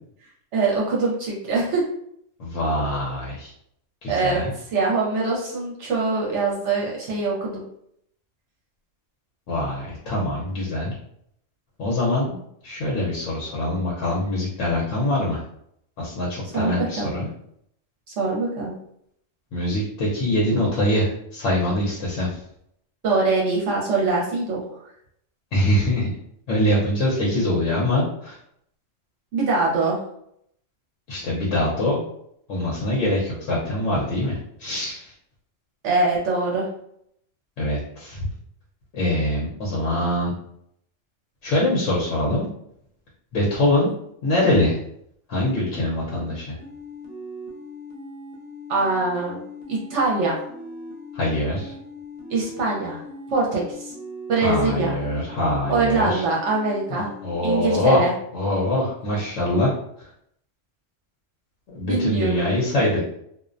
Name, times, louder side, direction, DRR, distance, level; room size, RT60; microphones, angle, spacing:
voice 1, 0.5-1.8 4.1-7.6 16.5-17.1 18.1-18.7 23.0-24.8 29.3-30.0 35.8-36.7 48.7-50.5 52.3-53.0 53.3-53.9 54.3-55.0 55.7-57.1 57.4-58.1 61.8-62.5, right 3 dB, 70° right, -3 dB, 0.9 m, -23 dB
voice 2, 2.4-3.5 4.0-4.5 9.5-10.9 11.8-15.4 16.0-17.3 19.5-22.4 25.5-26.1 26.5-28.3 31.1-32.0 32.5-35.1 37.6-38.3 38.9-40.3 41.4-42.5 43.3-43.9 44.2-44.8 45.3-46.5 51.1-51.7 54.4-56.2 56.9-58.0 58.3-59.7 61.7-63.1, left 1 dB, 75° left, -5 dB, 1.0 m, -23 dB
sound 1, 46.6-57.8, equal, 50° right, 0.5 m, -39 dB
2.5 x 2.1 x 2.5 m, 0.72 s
omnidirectional pair, 1.3 m